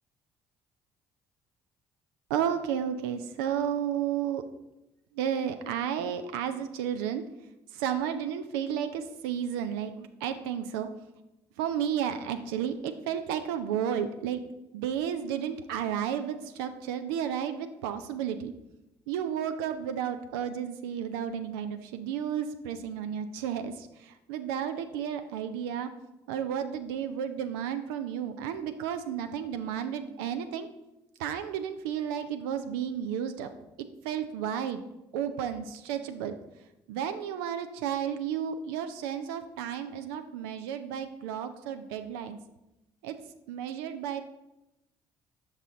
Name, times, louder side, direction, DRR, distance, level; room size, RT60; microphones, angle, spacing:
voice 1, 2.3-4.4 5.1-7.2 7.7-10.9 11.6-14.4 14.7-18.5 19.1-25.9 26.3-30.7 31.2-33.5 34.0-34.8 35.1-36.3 36.9-42.4 43.0-43.2 43.5-44.2, right 9 dB, 75° right, 8 dB, 0.4 m, -32 dB
6.1 x 5.4 x 3.7 m, 0.94 s
hypercardioid pair, 50°, 12 cm